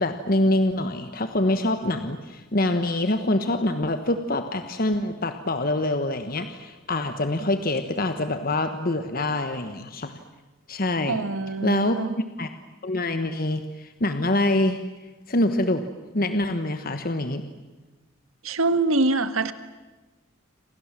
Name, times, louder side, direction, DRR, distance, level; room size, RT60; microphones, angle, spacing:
voice 1, 0.0-10.1 10.7-11.2 11.6-12.5 12.8-14.8 15.3-15.8 16.1-17.5, left 1 dB, 45° left, 8 dB, 1.4 m, -25 dB
voice 2, 11.1-12.1 18.4-19.5, right 2 dB, 80° right, 11 dB, 1.6 m, -24 dB
29.0 x 27.0 x 7.6 m, 1.2 s
head